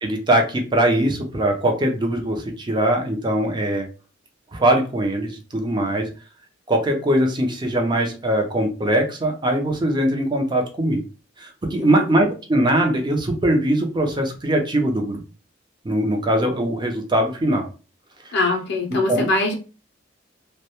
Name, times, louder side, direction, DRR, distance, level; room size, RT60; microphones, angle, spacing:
voice 1, 0.0-3.9 4.5-6.1 6.7-11.0 11.4-15.2 15.8-17.7 18.3-18.4 19.1-19.3, right 1 dB, 25° right, 3 dB, 0.5 m, -21 dB
voice 2, 11.8-12.1 18.3-19.5, left 2 dB, 65° left, 2 dB, 0.4 m, -23 dB
2.1 x 2.0 x 2.8 m, 0.35 s
head